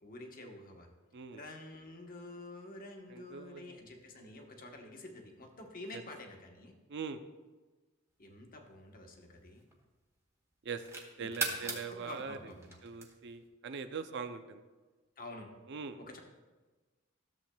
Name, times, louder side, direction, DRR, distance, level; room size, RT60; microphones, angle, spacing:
voice 1, 0.0-0.9 1.3-6.7 8.2-9.6 11.2-12.8 15.2-15.5 16.1-16.2, left 2 dB, 45° left, 2 dB, 1.1 m, -49 dB
voice 2, 1.1-1.5 3.1-3.8 5.9-6.0 6.9-7.2 10.6-10.8 11.2-12.5 12.8-14.6 15.7-16.0, right 5 dB, 60° right, 10 dB, 0.5 m, -42 dB
sound 1, 8.3-10.0 10.5-13.5, right 2 dB, 15° right, 1.0 m, -41 dB
13.0 x 7.2 x 2.2 m, 1.2 s
head